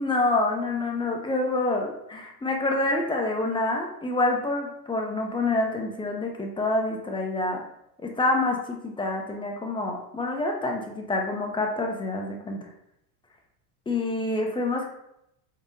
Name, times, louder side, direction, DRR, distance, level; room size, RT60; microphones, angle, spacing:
voice 1, 0.0-7.6 8.0-12.7 13.9-14.9, left 2 dB, 10° left, 1 dB, 0.6 m, -27 dB
3.6 x 3.1 x 2.6 m, 0.80 s
hypercardioid pair, 90°, 48 cm